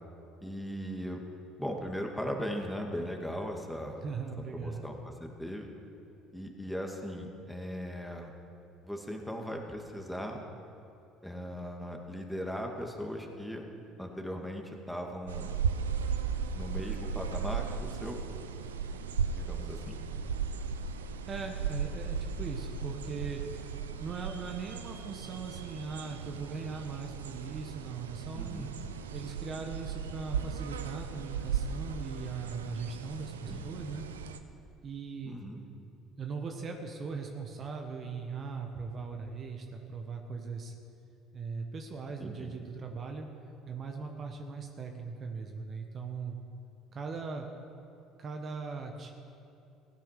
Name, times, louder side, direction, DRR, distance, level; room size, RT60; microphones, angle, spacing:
voice 1, 0.4-1.2 1.6-4.0 4.5-5.7 6.3-8.3 8.8-10.4 11.2-13.6 14.0-15.5 16.5-18.2 19.4-20.0 28.4-28.7 33.5-33.6 35.2-35.6 42.2-42.5, equal, 5° left, 2 dB, 2.2 m, -38 dB
voice 2, 4.0-4.9 21.3-23.4 24.0-28.7 29.1-34.0 34.8-35.4 36.2-40.7 41.3-43.3 43.7-46.4 46.9-47.5 48.2-49.1, right 4 dB, 45° right, 3 dB, 1.4 m, -39 dB
sound 1, 15.3-34.4, right 6 dB, 90° right, 0.6 m, -36 dB
16.0 x 9.2 x 6.7 m, 2.7 s
hypercardioid pair, 65°, 0 cm